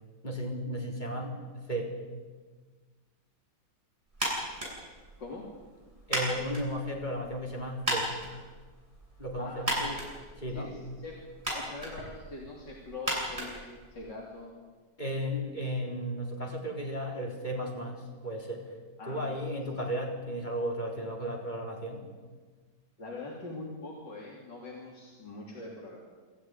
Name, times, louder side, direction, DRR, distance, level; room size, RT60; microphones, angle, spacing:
voice 1, 0.2-1.4 1.7-2.0 6.1-8.1 9.2-9.7 10.4-10.7 15.0-18.7 19.1-22.1, equal, 25° left, 0 dB, 4.2 m, -34 dB
sound 1, 4.1-14.3, right 1 dB, 20° right, 8.2 m, -37 dB
voice 2, 5.2-5.6 9.4-10.0 10.5-14.6 19.0-19.4 23.0-26.0, left 2 dB, 85° left, -3 dB, 4.0 m, -43 dB
26.0 x 14.5 x 9.7 m, 1.4 s
omnidirectional pair, 1.9 m